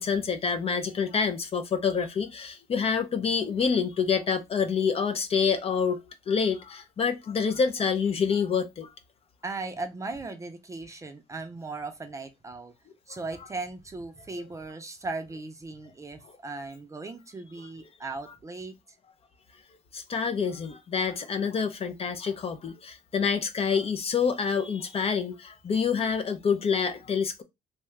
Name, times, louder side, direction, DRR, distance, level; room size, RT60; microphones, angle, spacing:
voice 1, 0.0-6.0 6.3-8.9 19.9-27.4, left 6 dB, 35° left, 0.5 m, -27 dB
voice 2, 9.4-12.7 13.1-18.7, right 3 dB, 20° right, 0.5 m, -37 dB
2.7 x 2.3 x 3.1 m
cardioid pair, 110°, 17 cm